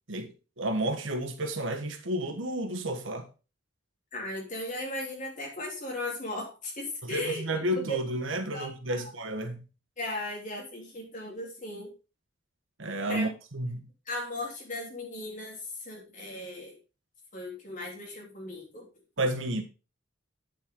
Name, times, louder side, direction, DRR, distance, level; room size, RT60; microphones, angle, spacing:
voice 1, 0.6-3.2 7.0-9.6 12.8-13.8 19.2-19.6, right 1 dB, 70° right, 1.4 m, -31 dB
voice 2, 4.1-7.4 7.7-8.0 8.5-9.1 10.0-11.9 13.1-13.2 14.1-16.7 17.3-18.9, left 1 dB, 40° left, 3.3 m, -37 dB
9.0 x 7.4 x 3.7 m
head